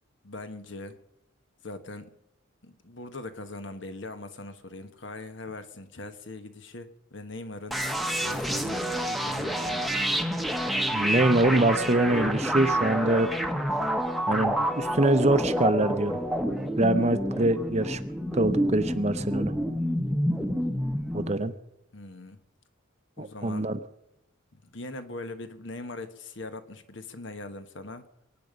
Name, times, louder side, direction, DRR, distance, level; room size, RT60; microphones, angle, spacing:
voice 1, 0.2-1.0 1.6-2.1 2.6-7.8 8.2-10.1 21.9-22.4 23.2-23.7 24.5-28.1, left 2 dB, 60° left, 9 dB, 1.3 m, -41 dB
sound 1, 7.7-21.3, equal, ahead, 1.0 m, -28 dB
voice 2, 10.9-13.3 14.3-16.2 16.8-18.0 18.3-19.5 21.1-21.5 23.2-23.8, right 1 dB, 30° right, 12 dB, 0.7 m, -24 dB
23.5 x 9.1 x 5.2 m, 0.86 s
head